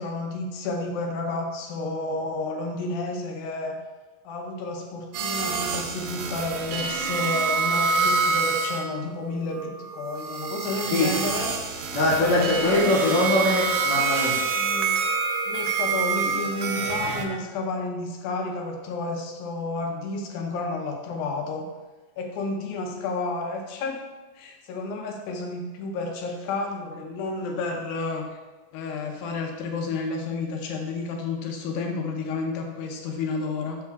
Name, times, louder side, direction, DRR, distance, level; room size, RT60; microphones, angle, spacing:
voice 1, 0.0-3.8 4.2-11.5 12.2-13.2 14.4-15.0 15.5-21.7 22.2-24.0 24.4-28.4 28.7-33.8, left 3 dB, 85° left, 2 dB, 2.6 m, -31 dB
sound 1, 5.1-8.8 9.2-17.3, right 5 dB, 90° right, 1.6 m, -27 dB
voice 2, 11.9-14.3, left 1 dB, 55° left, -8 dB, 2.9 m, -22 dB
12.0 x 4.7 x 2.3 m, 1.2 s
omnidirectional pair, 4.1 m